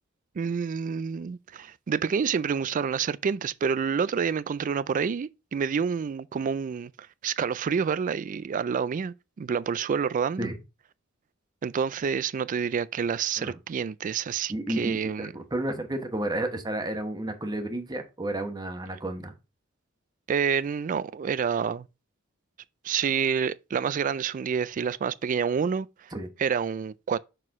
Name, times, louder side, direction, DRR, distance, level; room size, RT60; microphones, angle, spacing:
voice 1, 0.4-6.9 7.2-10.5 11.6-15.3 20.3-21.9 22.8-26.1 26.4-27.2, right 6 dB, 40° right, 0.3 m, -28 dB
voice 2, 14.5-19.3 26.1-26.3, right 1 dB, 20° right, 1.0 m, -32 dB
6.2 x 4.5 x 3.6 m
head